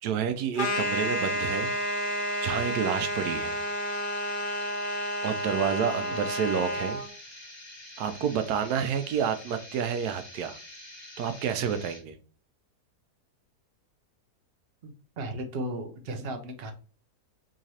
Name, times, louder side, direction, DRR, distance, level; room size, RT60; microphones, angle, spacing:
voice 1, 0.0-1.7 2.4-3.6 5.2-7.0 8.0-10.6 11.2-12.2, right 7 dB, 90° right, 9 dB, 1.1 m, -29 dB
sound 1, 0.5-7.1, equal, 65° left, 0.5 m, -30 dB
sound 2, 0.6-12.0, left 1 dB, 45° left, 1.7 m, -47 dB
voice 2, 14.8-16.7, right 1 dB, 60° right, 6 dB, 0.6 m, -35 dB
3.7 x 3.0 x 2.7 m, 0.39 s
omnidirectional pair, 1.7 m